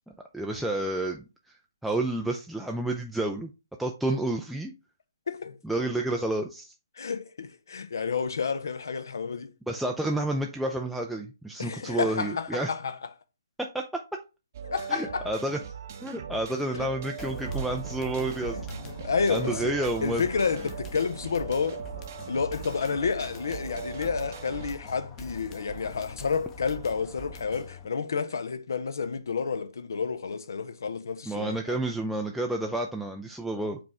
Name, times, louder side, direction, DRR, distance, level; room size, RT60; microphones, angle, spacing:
voice 1, 0.3-1.6 1.8-3.5 3.8-4.7 5.6-6.7 9.7-12.7 13.6-13.8 14.9-15.6 16.0-18.6 19.3-20.2 31.3-33.8, right 1 dB, ahead, 0.3 m, -30 dB
voice 2, 5.3-5.6 7.0-9.5 11.6-13.0 14.6-15.3 16.7-16.9 18.5-21.9 22.3-31.8, left 5 dB, 60° left, 0.5 m, -30 dB
sound 1, 14.5-24.8, right 7 dB, 40° right, 0.6 m, -40 dB
sound 2, 17.2-27.9, left 2 dB, 20° left, 0.7 m, -44 dB
sound 3, 17.4-23.4, right 5 dB, 65° right, 1.0 m, -43 dB
5.0 x 3.0 x 3.5 m
figure-of-eight pair, 135°, 2 cm